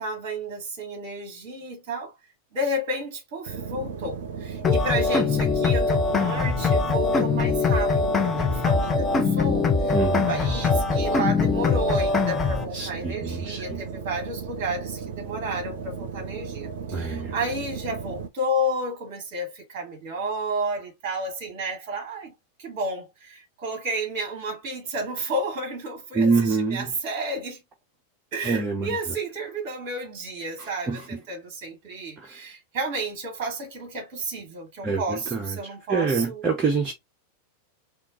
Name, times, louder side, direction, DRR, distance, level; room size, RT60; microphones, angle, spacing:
voice 1, 0.0-2.1 2.5-22.3 22.6-27.6 28.3-36.4, right 1 dB, 40° right, 1.1 m, -32 dB
sound 1, 3.5-18.3, right 6 dB, 55° right, 0.6 m, -35 dB
sound 2, 4.6-12.6, left 4 dB, 20° left, 0.6 m, -22 dB
voice 2, 9.9-10.3 12.7-13.8 16.9-17.3 26.1-26.9 28.4-29.0 30.6-31.2 32.2-32.4 34.8-35.6 35.9-36.9, right 4 dB, 20° right, 0.7 m, -26 dB
3.6 x 2.4 x 2.8 m
figure-of-eight pair, 90°, 0 cm